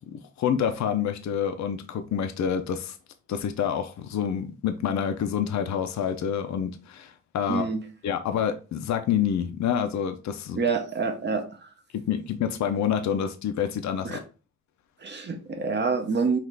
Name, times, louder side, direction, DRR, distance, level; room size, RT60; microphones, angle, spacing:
voice 1, 0.1-3.0 3.3-7.7 8.0-10.6 11.9-14.2, left 8 dB, 65° left, 0.5 m, -27 dB
voice 2, 7.5-7.8 10.6-11.7 14.0-14.2 15.0-16.4, right 4 dB, 35° right, 0.6 m, -27 dB
5.8 x 2.4 x 3.3 m
wide cardioid pair, 180°, 30 cm